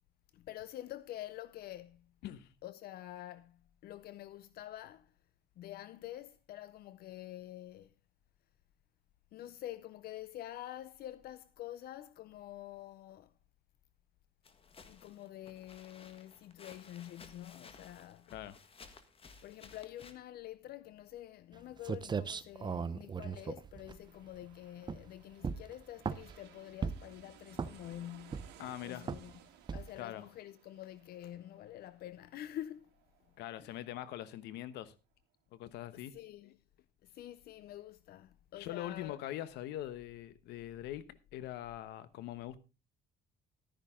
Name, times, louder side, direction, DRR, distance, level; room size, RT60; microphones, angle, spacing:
voice 1, 0.3-2.1 2.6-5.1 5.6-7.9 9.3-13.3 14.9-18.3 19.4-28.6 28.8-29.3 29.7-32.9 33.6-33.8 35.9-36.6 37.0-39.2, left 13 dB, 65° left, 0.6 m, -47 dB
voice 2, 2.2-2.5 18.3-18.6 28.6-29.2 30.0-30.3 33.4-34.9 35.5-36.1 38.6-42.6, left 13 dB, 85° left, 1.0 m, -43 dB
sound 1, 14.4-20.1, left 4 dB, 35° left, 1.5 m, -57 dB
sound 2, 21.5-21.6 21.8-24.4 24.8-25.1 25.4-26.4 26.8-27.2 27.5-27.9 28.3-28.7 29.1-29.3 29.7-30.0, right 5 dB, 25° right, 0.7 m, -38 dB
sound 3, 23.5-34.8 35.2-35.3, right 10 dB, 85° right, 2.3 m, -62 dB
12.0 x 10.5 x 3.6 m
cardioid pair, 110°, 17 cm